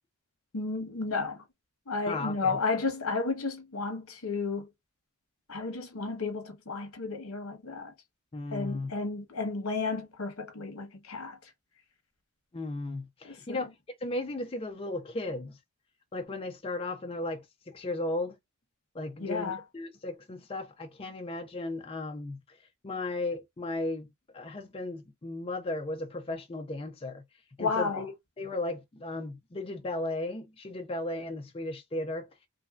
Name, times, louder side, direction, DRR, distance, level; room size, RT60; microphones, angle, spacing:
voice 1, 0.5-1.4 1.9-4.7 5.5-7.9 8.5-11.4 13.2-13.6 19.2-19.6 27.6-28.1, left 4 dB, 75° left, 1.0 m, -32 dB
voice 2, 2.1-2.6 8.3-8.9 12.5-13.7 14.0-15.6 16.1-18.4 18.9-22.6 22.8-24.1 24.3-27.2 27.6-28.1 28.4-32.3, left 2 dB, 25° left, 0.5 m, -35 dB
3.0 x 2.6 x 2.3 m
head